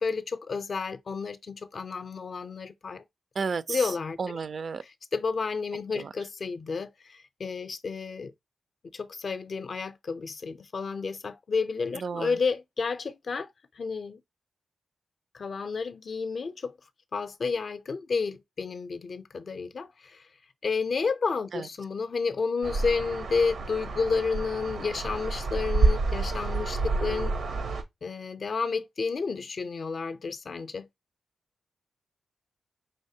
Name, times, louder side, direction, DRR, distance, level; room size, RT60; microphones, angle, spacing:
voice 1, 0.0-3.0 3.7-4.2 5.1-8.3 8.9-13.5 13.8-14.2 15.3-16.7 17.1-20.2 20.6-27.3 28.0-30.9, left 4 dB, 60° left, 0.5 m, -31 dB
voice 2, 3.4-3.9 4.2-4.8 5.9-6.1 12.0-12.4 21.5-21.7, right 5 dB, 60° right, 0.4 m, -32 dB
sound 1, 22.6-27.8, right 3 dB, 80° right, 0.8 m, -28 dB
5.4 x 3.2 x 2.7 m
cardioid pair, 65°, 0 cm